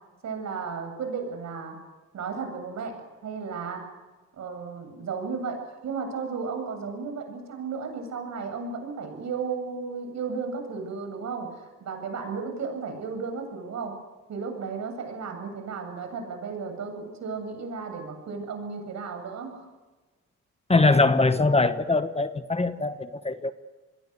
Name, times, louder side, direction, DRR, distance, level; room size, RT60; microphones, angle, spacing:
voice 1, 0.2-1.8 2.1-3.9 4.3-14.0 14.3-19.7, right 5 dB, 65° right, 7.9 m, -34 dB
voice 2, 20.7-23.5, left 3 dB, 20° left, 1.3 m, -22 dB
27.5 x 21.5 x 8.2 m
cardioid pair, 90°, 30 cm